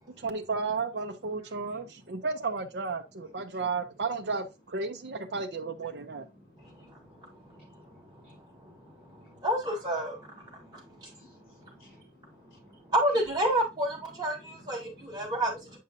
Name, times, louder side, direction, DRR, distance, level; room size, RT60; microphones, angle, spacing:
voice 1, 0.2-6.3, right 4 dB, 80° right, 0.6 m, -33 dB
voice 2, 7.2-7.7 8.2-8.4 10.6-12.0 14.9-15.3, left 1 dB, 55° left, 3.5 m, -56 dB
voice 3, 9.4-10.2 12.9-15.8, right 1 dB, 25° right, 3.4 m, -28 dB
8.4 x 5.4 x 2.6 m
head